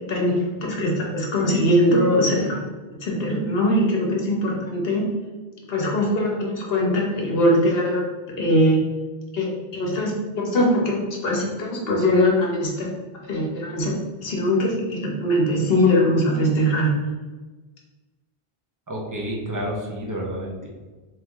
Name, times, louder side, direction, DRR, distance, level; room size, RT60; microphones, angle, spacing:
voice 1, 0.1-2.6 3.0-5.0 5.7-8.0 8.4-8.8 9.3-12.9 13.3-13.9 14.2-16.9, equal, 70° left, -2 dB, 1.1 m, -21 dB
voice 2, 18.9-20.7, equal, 25° right, -3 dB, 0.6 m, -30 dB
3.4 x 2.9 x 3.5 m, 1.3 s
omnidirectional pair, 1.0 m